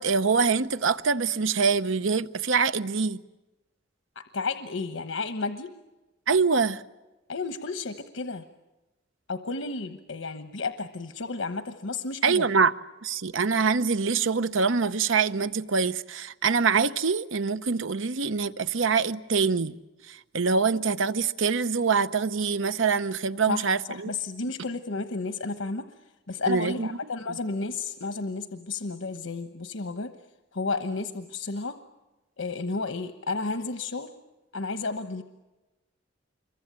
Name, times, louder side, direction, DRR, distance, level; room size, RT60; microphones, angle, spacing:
voice 1, 0.0-3.2 6.3-6.8 12.2-12.7 13.0-19.7 20.1-24.1 26.5-27.0 27.3-27.4, right 5 dB, 80° right, 0.8 m, -25 dB
voice 2, 4.1-5.7 7.3-8.4 9.3-12.4 23.5-25.9 26.3-30.1 30.5-31.8 32.4-34.1 34.5-35.2, left 3 dB, 80° left, 1.1 m, -32 dB
26.5 x 23.0 x 8.9 m
head